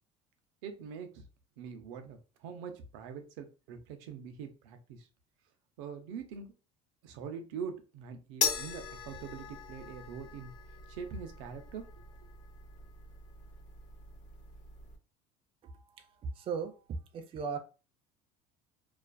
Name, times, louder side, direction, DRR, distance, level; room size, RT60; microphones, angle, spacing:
voice 1, 0.6-1.2 1.6-5.1 5.8-6.5 7.0-10.5 10.9-11.9, right 6 dB, 90° right, 6 dB, 0.5 m, -43 dB
sound 1, 8.4-15.0, left 5 dB, 55° left, 0.7 m, -39 dB
voice 2, 16.2-17.6, right 5 dB, 35° right, 7 dB, 0.4 m, -37 dB
2.4 x 2.3 x 2.2 m, 0.33 s
cardioid pair, 120°, 16 cm